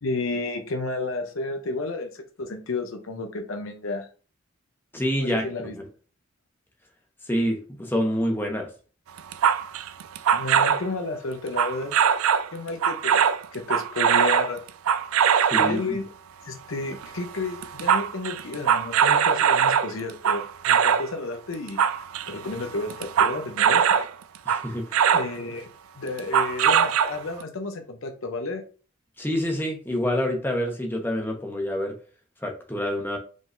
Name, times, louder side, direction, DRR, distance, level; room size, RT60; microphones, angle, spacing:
voice 1, 0.0-4.1 5.2-5.8 10.3-12.2 12.5-14.6 15.5-16.0 16.4-24.1 25.1-25.7 26.0-28.6, left 3 dB, 70° left, 5 dB, 0.7 m, -32 dB
voice 2, 4.9-5.5 5.8-5.9 7.3-8.7 15.5-16.0 24.5-24.8 29.2-31.9 32.4-33.2, equal, 10° left, 1 dB, 1.0 m, -27 dB
sound 1, 9.2-10.9 11.6-12.5 12.8-15.8 16.9-17.2 17.4-21.1 21.5-24.1 24.5-25.3 26.2-27.4, right 8 dB, 80° right, 0.4 m, -21 dB
5.1 x 3.7 x 2.6 m, 0.38 s
head